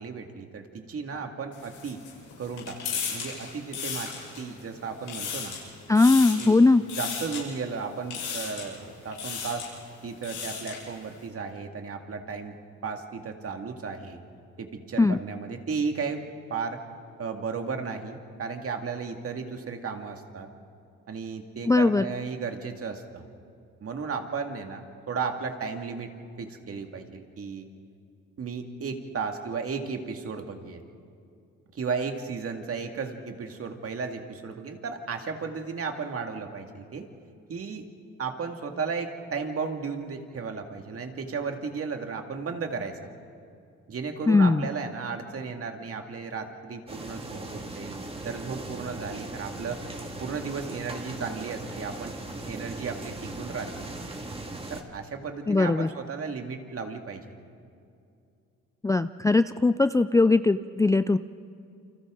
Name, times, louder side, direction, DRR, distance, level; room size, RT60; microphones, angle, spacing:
voice 1, 0.0-2.0 2.4-5.6 6.3-6.6 7.0-9.7 10.0-12.6 12.8-14.2 14.6-16.2 16.5-16.8 17.2-20.5 21.1-23.2 23.8-26.1 26.4-27.7 28.4-30.8 31.7-37.1 37.5-37.8 38.2-43.0 43.9-49.8 50.2-52.1 52.5-53.9 54.7-57.2, right 5 dB, 50° right, 4 dB, 2.2 m, -34 dB
sound 1, 1.5-4.6 4.9-5.6 5.9-6.5 6.9-7.4 8.1-8.7 9.1-9.7 10.1-10.8, left 6 dB, 90° left, 7.2 m, -35 dB
voice 2, 5.9-6.8 15.0-15.2 21.7-22.0 44.3-44.7 55.5-55.9 58.8-61.2, left 3 dB, 10° left, 12 dB, 0.4 m, -20 dB
sound 2, 46.9-54.8, right 2 dB, 20° right, 2.3 m, -38 dB
29.0 x 25.5 x 3.9 m, 2.5 s
cardioid pair, 80°, 30 cm